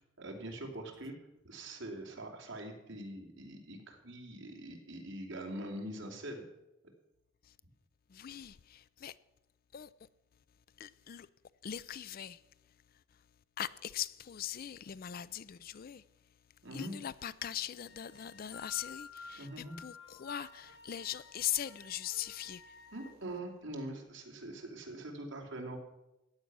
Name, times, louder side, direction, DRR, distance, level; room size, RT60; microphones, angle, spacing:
voice 1, 0.2-1.1 1.4-6.4 16.6-16.9 19.4-19.7 22.9-25.8, right 1 dB, 60° right, 2.9 m, -43 dB
voice 2, 8.1-9.2 9.7-9.9 10.8-11.3 11.6-12.4 12.9-13.2 13.6-16.0 16.7-22.8, left 11 dB, 45° left, 0.4 m, -40 dB
sound 1, 17.8-23.1, left 4 dB, 60° left, 1.3 m, -52 dB
15.0 x 9.6 x 6.1 m
head